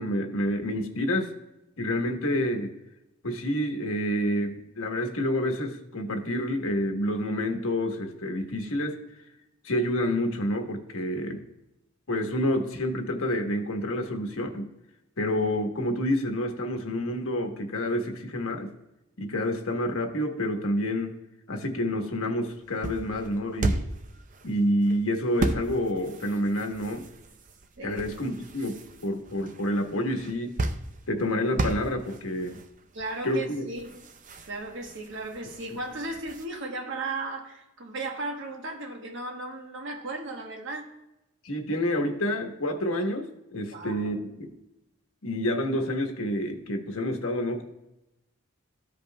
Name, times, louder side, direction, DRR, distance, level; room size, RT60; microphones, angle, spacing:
voice 1, 0.0-1.3 1.8-2.7 3.2-9.0 9.6-11.4 12.1-14.7 15.2-18.7 19.2-21.1 21.5-23.8 24.4-27.1 27.8-30.6 31.1-32.6 33.2-33.7 35.7-35.8 41.4-44.5 45.2-47.6, left 1 dB, 75° left, 1.1 m, -28 dB
sound 1, 22.4-36.5, right 2 dB, 40° right, 0.5 m, -36 dB
voice 2, 32.9-33.9 34.5-40.9 43.7-44.1, right 2 dB, 60° right, 1.1 m, -35 dB
14.0 x 5.2 x 2.2 m
head